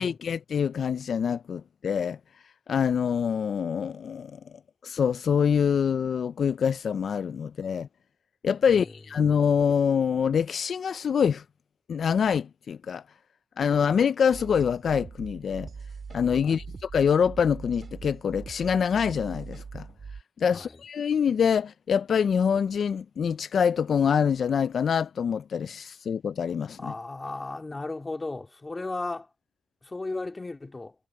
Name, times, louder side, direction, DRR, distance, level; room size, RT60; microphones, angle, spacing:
voice 1, 0.0-2.2 2.7-4.3 4.8-7.9 8.4-11.4 11.9-13.0 13.6-15.7 16.1-19.9 20.4-26.9, left 7 dB, 65° left, 0.3 m, -25 dB
sound 1, 14.3-20.2, right 5 dB, 50° right, 3.8 m, -42 dB
voice 2, 26.8-29.3 29.8-30.9, left 2 dB, 25° left, 2.7 m, -35 dB
cardioid pair, 90°, 0 cm